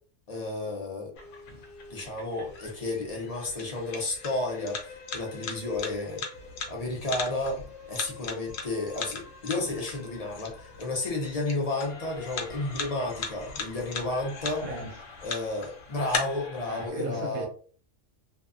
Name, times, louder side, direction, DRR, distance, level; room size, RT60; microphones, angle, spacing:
voice 1, 0.3-1.1 1.9-6.2 6.7-7.6 7.9-14.6 15.2-17.5, left 2 dB, 45° left, 0.5 m, -32 dB
sound 1, 1.1-16.9, left 3 dB, 85° left, 1.1 m, -48 dB
sound 2, 1.2-16.2, left 5 dB, 65° left, 0.8 m, -40 dB
voice 2, 14.6-15.1 16.7-17.5, right 1 dB, 70° right, 1.0 m, -36 dB
2.6 x 2.2 x 2.4 m
omnidirectional pair, 1.3 m